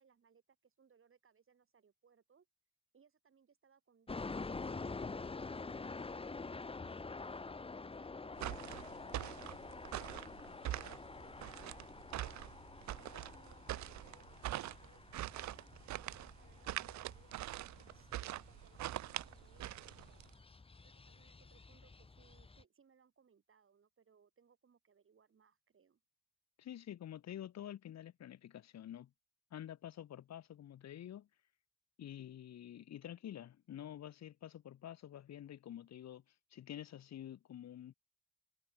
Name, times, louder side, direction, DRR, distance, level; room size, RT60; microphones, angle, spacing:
voice 1, 0.0-2.5 2.9-7.1 7.7-10.2 10.7-11.8 12.2-20.3 20.8-26.0, right 6 dB, 45° right, 7.3 m, -69 dB
sound 1, 4.1-22.6, left 3 dB, 20° left, 1.1 m, -48 dB
sound 2, 8.3-20.3, right 14 dB, 65° right, 0.7 m, -44 dB
voice 2, 26.6-29.1 29.5-31.3 32.0-37.9, left 11 dB, 60° left, 1.5 m, -49 dB
cardioid pair, 90°, 30 cm